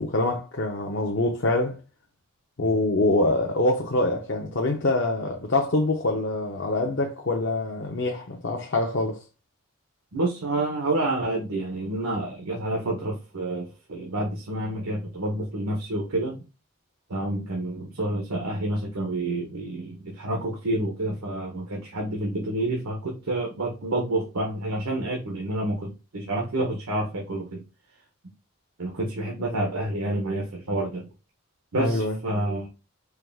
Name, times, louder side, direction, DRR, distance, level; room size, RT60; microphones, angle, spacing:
voice 1, 0.0-1.8 2.6-9.2 29.4-29.6 31.8-32.2, left 2 dB, 55° left, 0.7 m, -25 dB
voice 2, 10.1-16.4 17.1-27.6 28.8-31.1 31.7-32.7, right 1 dB, 90° right, 1.0 m, -28 dB
4.6 x 2.3 x 3.5 m
head